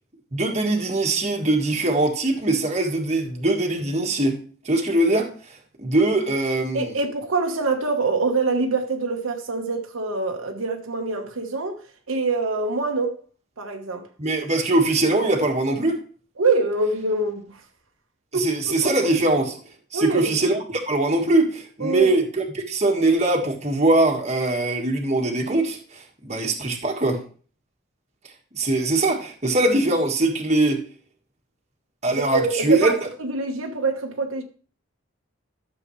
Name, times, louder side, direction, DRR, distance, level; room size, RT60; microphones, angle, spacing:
voice 1, 0.3-4.4 4.6-5.3 5.8-6.9 14.2-16.0 18.4-19.6 19.9-27.2 28.5-30.8 32.0-32.9, right 2 dB, 35° right, 1.6 m, -22 dB
voice 2, 6.7-11.8 12.1-13.2 13.6-14.1 16.4-17.6 18.3-18.5 18.8-19.1 19.9-20.3 21.8-22.2 32.3-34.4, right 3 dB, 85° right, 1.3 m, -25 dB
12.5 x 6.9 x 3.2 m
head